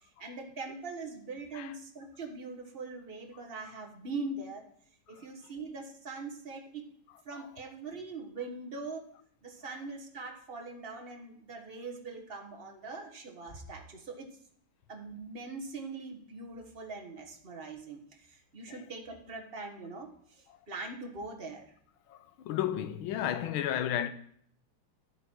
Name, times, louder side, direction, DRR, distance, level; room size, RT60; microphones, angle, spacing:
voice 1, 0.0-4.6 5.1-6.9 7.2-9.1 9.4-14.3 14.9-21.6, right 3 dB, 30° right, 1.5 m, -42 dB
voice 2, 22.1-24.1, left 11 dB, 85° left, 1.6 m, -33 dB
13.5 x 7.9 x 4.6 m
omnidirectional pair, 2.2 m